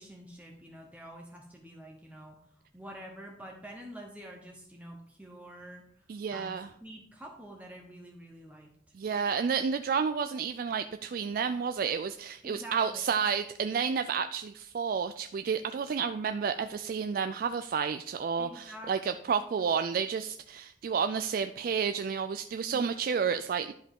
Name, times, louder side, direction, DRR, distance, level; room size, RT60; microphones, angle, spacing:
voice 1, 0.0-2.4 2.7-6.5 6.8-8.7 12.4-13.1 18.4-19.2 22.7-22.9, right 1 dB, 10° right, 0 dB, 0.8 m, -47 dB
voice 2, 6.1-6.7 8.9-23.7, right 6 dB, 50° right, 10 dB, 0.3 m, -31 dB
11.0 x 5.2 x 3.6 m, 0.69 s
head